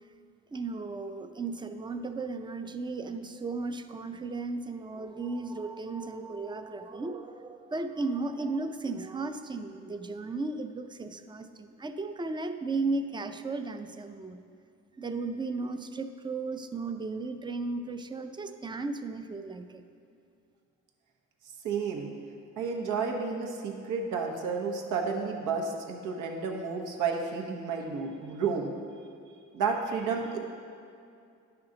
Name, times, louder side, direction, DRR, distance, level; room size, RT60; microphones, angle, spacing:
voice 1, 0.5-14.4 15.0-19.8, right 3 dB, 15° right, 8 dB, 0.4 m, -35 dB
voice 2, 21.6-22.1 22.6-28.7 29.5-30.4, right 5 dB, 80° right, 1 dB, 1.1 m, -31 dB
10.5 x 5.9 x 3.8 m, 2.4 s
cardioid pair, 90°, 30 cm